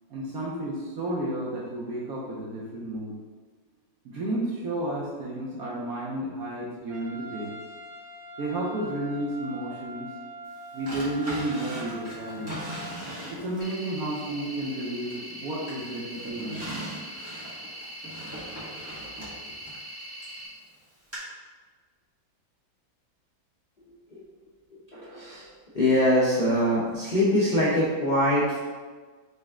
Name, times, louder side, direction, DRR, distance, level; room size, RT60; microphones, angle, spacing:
voice 1, 0.1-3.2 4.0-7.5 8.4-10.1 10.7-12.6 13.3-16.6, right 1 dB, 65° right, -5 dB, 0.9 m, -32 dB
Trumpet, 6.9-13.0, right 1 dB, 80° right, 1.5 m, -42 dB
Drawer open or close, 10.9-13.8 14.3-15.3 15.7-20.4 21.1-21.2, right 1 dB, 10° right, 1.2 m, -39 dB
sound 1, 13.6-20.5, equal, 45° left, 1.0 m, -41 dB
voice 2, 24.9-25.5 25.7-28.6, left 1 dB, 80° left, -9 dB, 0.4 m, -23 dB
4.0 x 3.3 x 3.6 m, 1.4 s
omnidirectional pair, 2.1 m